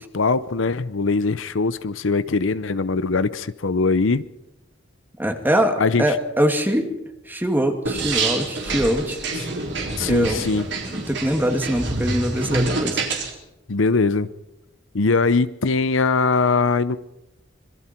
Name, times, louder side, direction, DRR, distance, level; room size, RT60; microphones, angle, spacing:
voice 1, 0.0-4.2 5.8-6.2 10.0-10.6 13.7-14.3 14.9-17.0, left 4 dB, 75° left, 14 dB, 0.7 m, -21 dB
voice 2, 5.2-6.9 7.3-9.2 10.0-10.4 10.9-13.0, equal, 10° right, 5 dB, 2.4 m, -23 dB
sound 1, 7.9-13.3, right 3 dB, 60° right, 3.9 m, -27 dB
26.0 x 22.5 x 4.5 m, 0.93 s
head